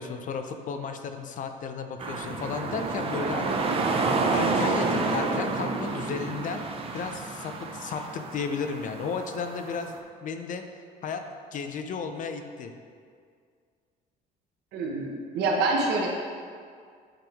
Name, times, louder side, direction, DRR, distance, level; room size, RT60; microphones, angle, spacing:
voice 1, 0.0-4.0 4.3-6.7 6.9-10.6 11.0-11.2 11.5-12.7, left 5 dB, 50° left, 7 dB, 0.5 m, -34 dB
sound 1, 2.0-10.0, right 3 dB, 35° right, 0.6 m, -29 dB
voice 2, 14.7-16.1, right 3 dB, 80° right, 0 dB, 1.0 m, -26 dB
8.7 x 3.5 x 3.5 m, 2.1 s
cardioid pair, 110°, 17 cm